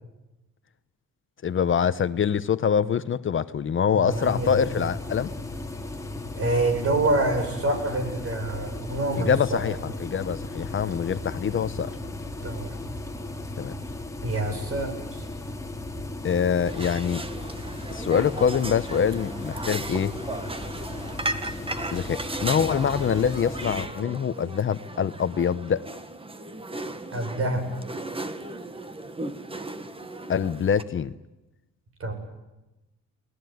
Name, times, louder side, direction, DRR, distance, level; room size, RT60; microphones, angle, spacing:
voice 1, 1.4-5.3 9.2-11.9 13.6-13.7 16.2-17.2 17.9-20.1 21.9-25.9 30.3-31.1, left 7 dB, 45° left, 13 dB, 0.9 m, -25 dB
voice 2, 3.9-4.8 6.4-9.6 12.4-12.8 14.2-15.2 27.1-27.7 32.0-32.1, right 2 dB, 50° right, 6 dB, 7.6 m, -27 dB
sound 1, 4.1-23.9, left 2 dB, 10° left, 2.5 m, -36 dB
sound 2, 16.7-30.8, right 2 dB, 20° right, 1.7 m, -36 dB
30.0 x 20.0 x 9.4 m, 1.0 s
cardioid pair, 130°, 30 cm